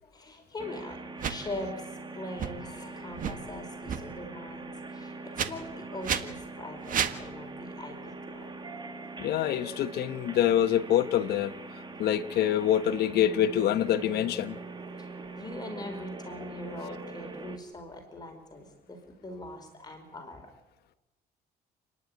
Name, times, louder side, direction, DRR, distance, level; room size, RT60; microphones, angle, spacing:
voice 1, 0.0-1.9 2.1-8.6 9.4-9.5 15.0-20.5, left 1 dB, 25° left, 4.7 m, -42 dB
sound 1, 0.6-17.6, right 3 dB, 25° right, 2.4 m, -43 dB
sound 2, 1.2-1.3 2.4-2.5 3.1-3.4 3.8-4.0 5.3-5.5 6.0-6.2 6.8-7.2, right 8 dB, 50° right, 1.7 m, -30 dB
voice 2, 9.2-11.5 12.0-14.6, left 11 dB, 70° left, 1.3 m, -25 dB
29.5 x 11.0 x 9.6 m
cardioid pair, 110°, 17 cm